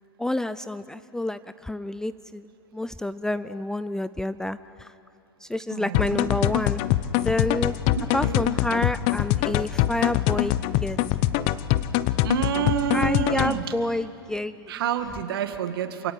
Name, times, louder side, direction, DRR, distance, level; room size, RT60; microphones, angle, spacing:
voice 1, 0.2-4.9 5.4-6.8 7.2-7.8 8.1-10.6 10.8-11.2 12.9-14.7, left 1 dB, 5° left, 14 dB, 0.5 m, -29 dB
voice 2, 5.7-6.3 8.0-8.4 12.2-13.7 14.7-16.1, right 9 dB, 65° right, 9 dB, 2.0 m, -28 dB
sound 1, 5.9-13.6, left 14 dB, 45° left, 0.9 m, -24 dB
27.5 x 17.5 x 9.6 m, 2.9 s
hypercardioid pair, 105°, 13 cm